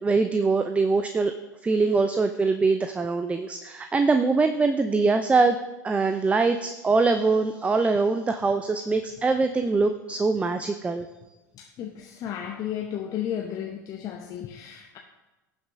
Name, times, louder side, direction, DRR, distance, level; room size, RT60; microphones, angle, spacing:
voice 1, 0.0-1.3 1.6-5.6 5.8-11.1, right 4 dB, 15° right, 8 dB, 0.5 m, -23 dB
voice 2, 11.5-15.0, left 10 dB, 40° left, 2 dB, 0.9 m, -33 dB
17.0 x 5.8 x 2.7 m, 1.1 s
figure-of-eight pair, 80°, 10 cm